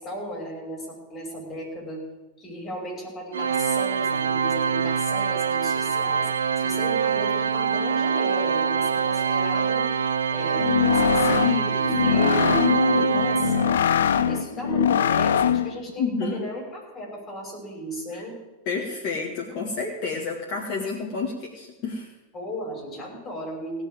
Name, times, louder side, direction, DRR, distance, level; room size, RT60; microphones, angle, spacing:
voice 1, 0.0-2.0 2.4-9.9 10.3-13.7 14.1-18.4 22.3-23.8, equal, 25° left, -1 dB, 5.8 m, -35 dB
Organ, 3.3-14.1, right 6 dB, 65° right, 0.5 m, -24 dB
sound 1, 10.5-15.8, left 9 dB, 65° left, 0.3 m, -22 dB
voice 2, 16.0-16.5 18.1-18.3 18.7-22.1, left 4 dB, 45° left, 0 dB, 1.7 m, -30 dB
17.0 x 5.8 x 9.3 m, 1.1 s
figure-of-eight pair, 90°, 0 cm